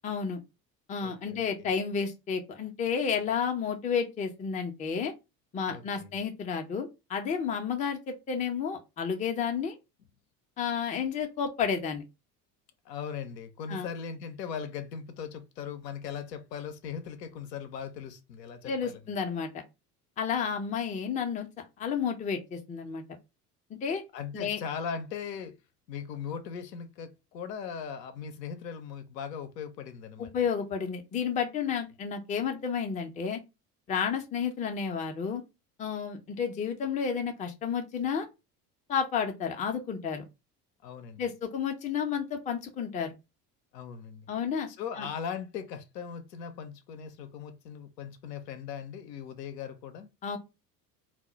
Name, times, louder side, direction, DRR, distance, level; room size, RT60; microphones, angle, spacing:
voice 1, 0.0-0.4 0.9-5.1 5.5-9.8 10.6-12.0 13.7-13.9 18.7-19.6 20.2-21.5 21.8-23.0 23.7-24.0 24.3-24.6 30.2-33.4 33.9-35.4 35.8-38.3 38.9-40.2 41.2-43.1 44.3-44.7 45.0-45.1 50.2-50.4, left 6 dB, 15° left, 0.4 m, -31 dB
voice 2, 1.0-1.7 5.7-6.2 12.9-19.0 24.1-25.5 25.9-30.3 40.8-41.2 43.7-44.3 44.7-50.1, left 7 dB, 80° left, 0.6 m, -39 dB
2.1 x 2.0 x 3.7 m
figure-of-eight pair, 65°, 48 cm